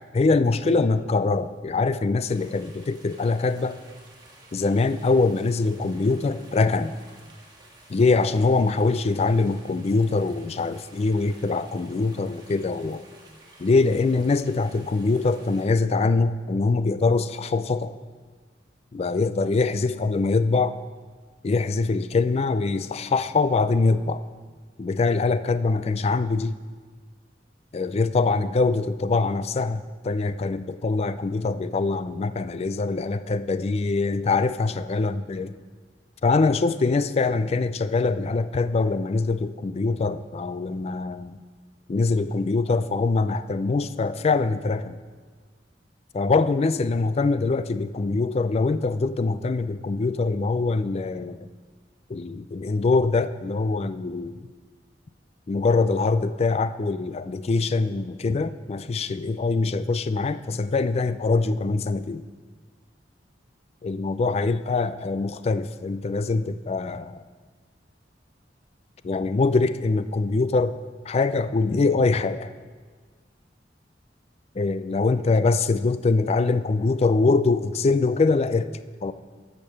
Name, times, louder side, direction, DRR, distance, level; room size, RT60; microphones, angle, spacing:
voice 1, 0.1-3.8 4.5-6.9 7.9-13.0 13.6-17.9 18.9-20.8 21.4-24.2 24.8-26.5 27.7-35.5 36.2-41.4 41.9-45.0 46.1-51.5 52.1-54.5 55.5-62.2 63.8-67.2 69.0-70.8 71.1-72.5 74.6-78.7 79.0-79.1, left 3 dB, 35° left, 13 dB, 0.4 m, -23 dB
sound 1, 2.2-15.7, right 2 dB, 25° right, 1.6 m, -52 dB
12.0 x 5.2 x 6.5 m, 1.5 s
head